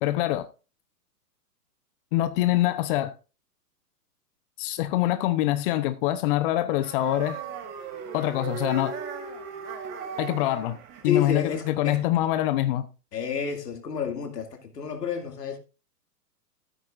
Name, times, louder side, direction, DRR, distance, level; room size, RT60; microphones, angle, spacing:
voice 1, 0.0-0.5 2.1-3.1 4.6-7.4 8.1-8.9 10.2-10.8 11.0-12.9, left 14 dB, 35° left, 0.8 m, -25 dB
sound 1, 6.8-12.0, right 6 dB, 35° right, 2.8 m, -37 dB
voice 2, 11.0-12.1 13.1-15.6, left 7 dB, 80° left, 2.5 m, -30 dB
14.0 x 8.7 x 2.5 m
hypercardioid pair, 125°, 47 cm